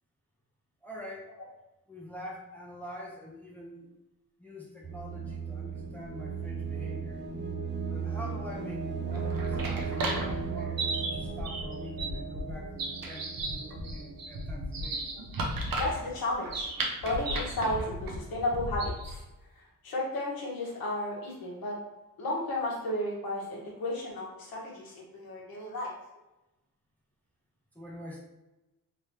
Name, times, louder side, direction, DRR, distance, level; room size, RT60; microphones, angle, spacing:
voice 1, 0.8-1.3 1.9-3.9 4.4-7.2 7.9-15.0 27.7-28.2, equal, 5° left, -4 dB, 0.7 m, -45 dB
sound 1, 4.8-14.6, right 5 dB, 30° right, 0.5 m, -36 dB
sound 2, 9.0-19.2, right 1 dB, 75° right, 0.8 m, -35 dB
voice 2, 15.8-16.7 17.0-19.2 19.6-21.8 22.2-25.9, left 1 dB, 90° left, -3 dB, 1.3 m, -33 dB
3.4 x 3.3 x 2.8 m, 0.99 s
cardioid pair, 95°, 35 cm